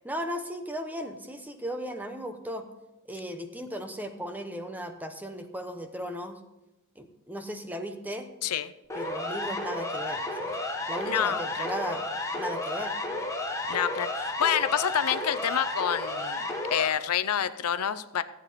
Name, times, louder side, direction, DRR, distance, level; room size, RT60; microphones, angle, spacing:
voice 1, 0.0-2.7 3.1-6.4 7.0-8.3 8.9-10.6 10.9-12.1 12.3-13.0, equal, 10° right, 6 dB, 0.9 m, -36 dB
voice 2, 8.4-8.7 11.1-11.7 13.7-18.2, left 9 dB, 85° left, 12 dB, 0.5 m, -28 dB
Siren, 8.9-16.9, left 2 dB, 15° left, 1.2 m, -32 dB
14.0 x 8.3 x 4.1 m, 0.95 s
head